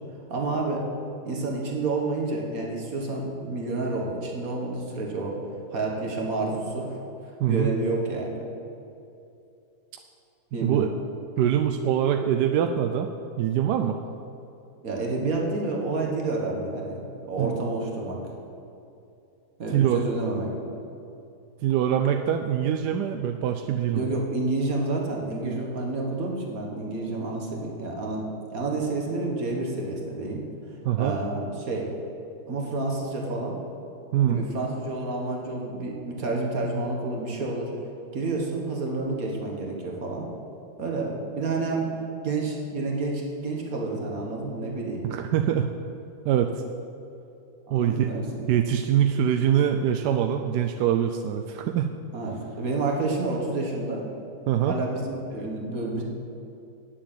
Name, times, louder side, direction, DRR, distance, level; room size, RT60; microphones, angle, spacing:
voice 1, 0.3-0.8 1.2-5.4 5.7-8.4 10.5-10.9 14.8-18.2 19.6-20.5 23.9-28.3 28.5-30.4 31.0-31.9 32.5-33.6 34.3-37.7 38.1-40.3 40.8-41.9 42.2-45.1 47.7-48.6 52.1-54.0 54.7-56.0, right 2 dB, 55° right, 0 dB, 2.0 m, -29 dB
voice 2, 7.4-7.7 10.6-10.9 11.4-13.1 13.4-14.0 17.4-17.6 19.7-20.1 21.6-24.0 30.8-31.2 34.1-34.5 45.0-45.7 46.2-46.6 47.7-48.1 48.5-51.9 54.5-54.8, right 10 dB, 80° right, 5 dB, 1.1 m, -24 dB
9.0 x 7.5 x 8.8 m, 2.7 s
omnidirectional pair, 1.8 m